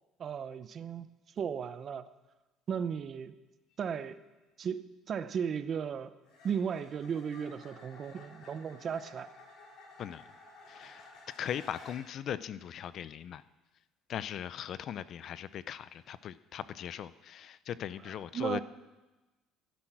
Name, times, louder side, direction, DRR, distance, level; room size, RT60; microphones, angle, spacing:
voice 1, 0.2-1.1 1.4-2.1 2.7-3.3 3.8-4.2 4.6-6.1 6.4-9.3 18.3-18.6, right 7 dB, 40° right, 13 dB, 0.7 m, -35 dB
sound 1, 3.7-3.9 6.2-12.2 15.9-16.1, left 2 dB, 70° left, 6.1 m, -54 dB
voice 2, 10.7-13.4 14.1-18.6, left 9 dB, 50° left, 16 dB, 0.5 m, -39 dB
16.0 x 10.5 x 6.1 m, 1.1 s
cardioid pair, 120°, 0 cm